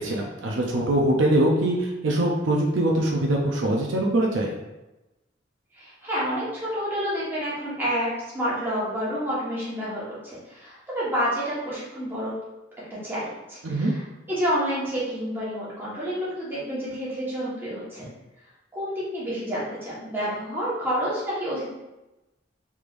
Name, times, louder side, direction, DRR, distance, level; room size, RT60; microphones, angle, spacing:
voice 1, 0.0-4.5 13.6-14.0, right 1 dB, 70° right, 0 dB, 0.5 m, -23 dB
voice 2, 5.7-8.1 8.3-12.3 13.0-13.2 13.5-14.0 14.3-18.0 18.7-21.7, equal, 10° right, -9 dB, 1.2 m, -29 dB
3.5 x 3.1 x 2.5 m, 1.0 s
head